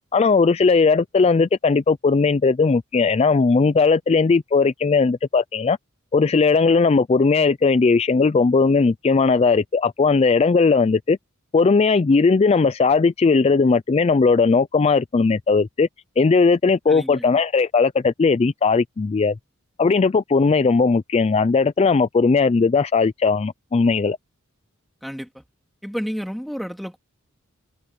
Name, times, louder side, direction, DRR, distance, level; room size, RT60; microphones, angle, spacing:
voice 1, 0.1-5.8 6.1-11.2 11.5-15.9 16.2-19.3 19.8-24.2, left 4 dB, 30° left, 0.3 m, -18 dB
voice 2, 16.9-17.3 25.0-25.4 25.8-27.0, equal, ahead, 2.6 m, -31 dB
head